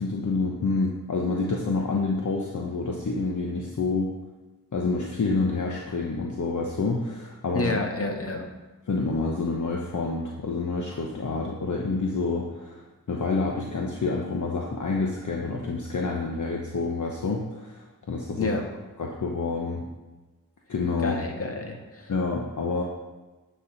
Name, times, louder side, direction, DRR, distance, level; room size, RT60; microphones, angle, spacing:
voice 1, 0.0-4.1 4.7-7.7 8.9-18.6 19.0-19.9 20.7-21.2 22.1-22.8, left 3 dB, 55° left, 0 dB, 1.0 m, -28 dB
voice 2, 7.5-8.5 18.3-18.6 21.0-22.1, left 2 dB, 40° left, 2 dB, 1.6 m, -29 dB
9.6 x 5.5 x 4.1 m, 1.2 s
cardioid pair, 45°, 35 cm